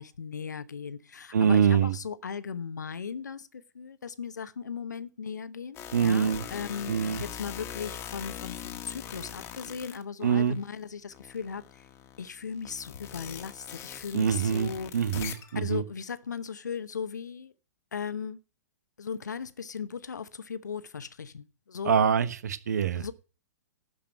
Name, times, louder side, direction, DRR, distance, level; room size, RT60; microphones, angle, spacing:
voice 1, 0.0-11.9 12.2-14.9 15.5-17.5 17.9-18.4 19.0-22.1 23.0-23.1, left 6 dB, 80° left, 0.9 m, -37 dB
voice 2, 1.3-1.9 5.9-6.4 6.9-7.2 10.2-10.6 14.1-15.8 21.8-23.1, right 7 dB, 70° right, 1.1 m, -25 dB
sound 1, 5.7-10.7 11.1-15.6, left 9 dB, 30° left, 1.6 m, -42 dB
12.0 x 5.3 x 7.6 m
hypercardioid pair, 115°, 9 cm